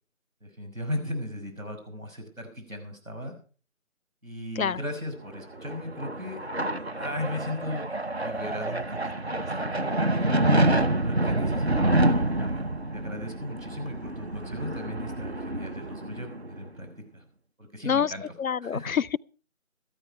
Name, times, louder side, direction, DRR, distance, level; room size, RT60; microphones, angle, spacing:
voice 1, 0.4-3.4 4.2-6.4 6.9-7.9 8.2-10.3 11.0-12.6 12.9-16.9 17.1-17.2 17.6-18.2 18.6-18.9, left 1 dB, 75° right, 6.3 m, -37 dB
sound 1, 5.4-16.7, right 1 dB, 50° right, 0.9 m, -27 dB
voice 2, 18.4-19.2, left 7 dB, 80° left, 0.5 m, -26 dB
14.0 x 13.0 x 4.6 m
figure-of-eight pair, 170°, 41 cm